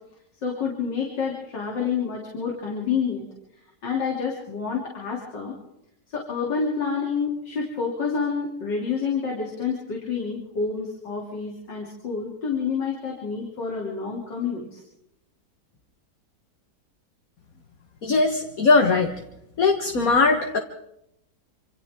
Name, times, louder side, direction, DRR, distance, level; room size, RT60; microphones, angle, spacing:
voice 1, 0.4-3.3 3.8-5.6 6.1-14.8, left 5 dB, 90° left, -2 dB, 3.8 m, -28 dB
voice 2, 18.0-19.1 19.6-20.6, left 3 dB, 55° left, 4 dB, 1.8 m, -20 dB
27.0 x 27.0 x 3.7 m, 0.81 s
omnidirectional pair, 1.9 m